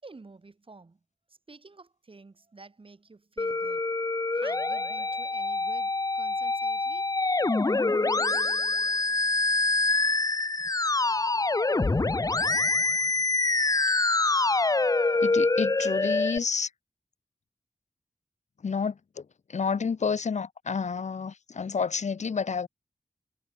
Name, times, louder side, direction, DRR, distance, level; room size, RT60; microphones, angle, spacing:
voice 1, 0.0-1.0 1.5-3.9 4.3-7.1, right 3 dB, 50° right, 6.2 m, -50 dB
Musical instrument, 3.4-16.4, left 3 dB, 30° left, 0.8 m, -25 dB
voice 2, 15.2-16.7 18.6-22.7, left 5 dB, 80° left, 1.2 m, -30 dB
wide cardioid pair, 85°, 12 cm